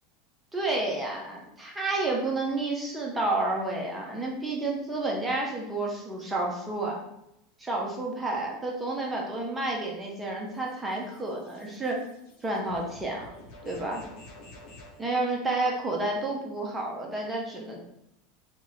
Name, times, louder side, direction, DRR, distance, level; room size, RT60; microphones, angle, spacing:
voice 1, 0.5-7.0 7.6-12.0 12.4-13.3 13.6-14.0 15.0-17.8, right 2 dB, 15° right, -2 dB, 0.8 m, -30 dB
sound 1, 9.5-15.0, left 1 dB, 60° left, 1.1 m, -51 dB
2.9 x 2.4 x 4.1 m, 0.80 s
supercardioid pair, 115°, 0 cm